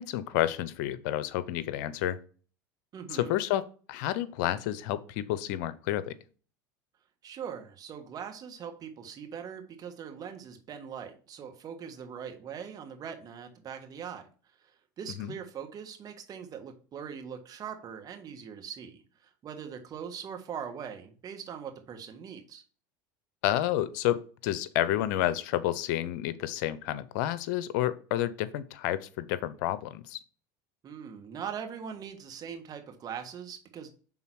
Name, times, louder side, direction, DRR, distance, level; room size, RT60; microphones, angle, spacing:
voice 1, 0.0-2.2 3.1-6.2 15.2-15.4 23.4-30.2, left 13 dB, 70° left, 15 dB, 0.6 m, -30 dB
voice 2, 2.9-3.4 7.2-14.3 14.6-14.7 15.0-22.6 30.8-33.9, right 7 dB, 40° right, 5 dB, 1.4 m, -41 dB
5.6 x 3.8 x 4.6 m, 0.39 s
hypercardioid pair, 95°, 10 cm